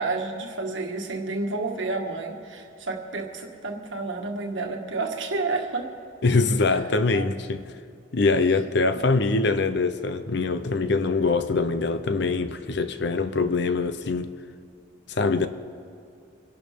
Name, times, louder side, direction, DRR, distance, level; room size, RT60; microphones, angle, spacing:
voice 1, 0.0-5.9 7.1-7.3 8.9-9.3, right 3 dB, 70° right, 1.6 m, -30 dB
voice 2, 6.2-7.7 8.1-14.3 15.1-15.5, left 3 dB, 60° left, 0.7 m, -23 dB
24.5 x 11.5 x 3.6 m
head